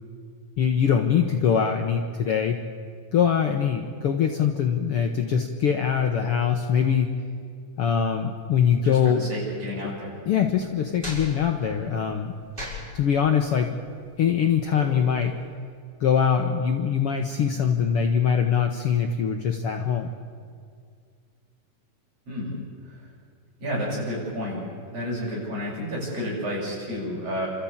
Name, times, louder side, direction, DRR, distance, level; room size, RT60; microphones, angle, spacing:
voice 1, 0.6-2.6 3.1-7.1 7.8-9.2 10.3-12.3 12.9-13.8 14.2-15.4 16.0-20.1, left 7 dB, 60° left, 4 dB, 1.7 m, -23 dB
voice 2, 8.8-10.2 22.3-22.6 22.9-23.0 23.6-27.5, equal, 50° right, -4 dB, 8.3 m, -31 dB
sound 1, 10.6-15.5, left 1 dB, 15° right, 6.3 m, -40 dB
30.0 x 14.0 x 8.7 m, 2.1 s
omnidirectional pair, 3.6 m